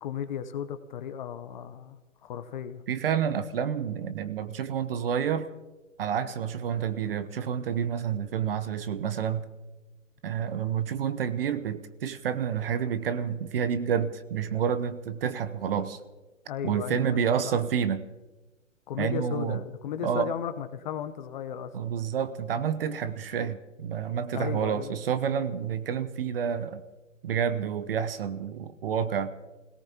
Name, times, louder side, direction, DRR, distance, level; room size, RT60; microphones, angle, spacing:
voice 1, 0.0-2.8 16.5-17.5 18.9-21.7 24.3-24.9, left 8 dB, 35° left, 10 dB, 0.9 m, -35 dB
voice 2, 2.9-5.5 6.0-9.5 10.2-16.0 16.6-18.0 19.0-19.6 20.0-20.3 21.7-26.8 27.2-29.3, right 8 dB, 50° right, 14 dB, 0.9 m, -29 dB
28.0 x 17.5 x 2.9 m, 1.1 s
figure-of-eight pair, 135°, 38 cm